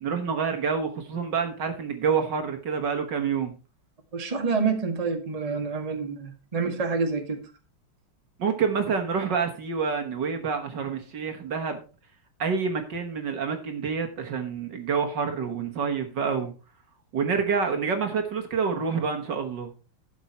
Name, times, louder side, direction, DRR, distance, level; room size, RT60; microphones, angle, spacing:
voice 1, 0.0-3.5 8.4-11.8 12.4-16.5 17.1-19.7, right 5 dB, 60° right, 5 dB, 1.9 m, -27 dB
voice 2, 4.1-7.4, right 4 dB, 20° right, 4 dB, 1.5 m, -27 dB
12.0 x 7.0 x 4.3 m, 0.33 s
omnidirectional pair, 2.3 m